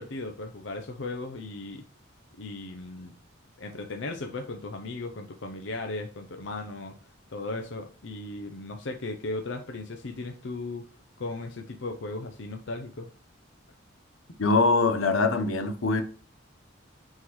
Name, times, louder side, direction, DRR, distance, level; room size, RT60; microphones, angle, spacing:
voice 1, 0.0-1.8 2.4-3.1 3.6-6.9 7.3-10.9 11.2-13.1, left 2 dB, 65° left, 0.6 m, -36 dB
voice 2, 14.4-16.0, left 3 dB, 85° left, 0.9 m, -23 dB
8.9 x 3.8 x 3.1 m
head